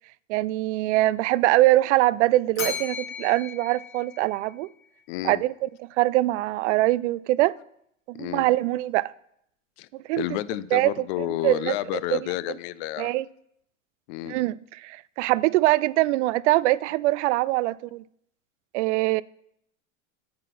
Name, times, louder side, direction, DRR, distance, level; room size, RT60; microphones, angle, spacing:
voice 1, 0.3-4.7 5.2-5.7 6.0-7.5 8.1-9.1 10.1-10.2 10.7-11.7 12.1-12.3 13.0-13.3 14.3-18.0 18.7-19.2, right 17 dB, 60° right, 0.5 m, -23 dB
Bell, 2.5-4.8, left 6 dB, 85° left, 3.5 m, -36 dB
voice 2, 5.1-5.4 8.2-8.5 9.8-9.9 10.2-13.1 14.1-14.4, left 15 dB, 55° left, 0.7 m, -30 dB
9.1 x 8.7 x 5.9 m
hypercardioid pair, 95°, 40 cm